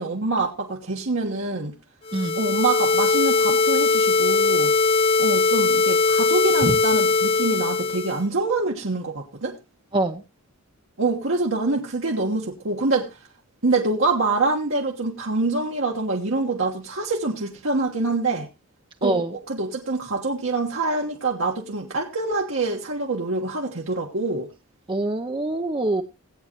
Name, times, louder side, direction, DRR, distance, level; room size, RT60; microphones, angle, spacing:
voice 1, 0.0-1.7 2.3-4.7 5.2-9.6 11.0-13.1 13.6-18.5 19.0-24.5, right 3 dB, 65° right, 1.3 m, -25 dB
sound 1, 2.1-8.2, left 3 dB, 25° left, 0.5 m, -20 dB
voice 2, 24.9-26.0, right 2 dB, 25° right, 0.6 m, -24 dB
17.5 x 8.8 x 3.0 m
head